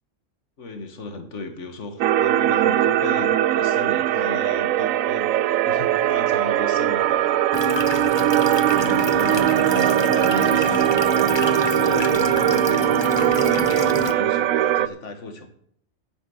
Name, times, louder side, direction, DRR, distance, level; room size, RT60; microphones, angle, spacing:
voice 1, 0.6-7.8 8.6-15.5, left 3 dB, 55° left, 7 dB, 1.8 m, -35 dB
sound 1, 2.0-14.9, right 12 dB, 70° right, 1.0 m, -20 dB
sound 2, 7.5-14.1, left 3 dB, 25° left, 0.6 m, -28 dB
9.5 x 9.2 x 7.0 m, 0.67 s
omnidirectional pair, 1.5 m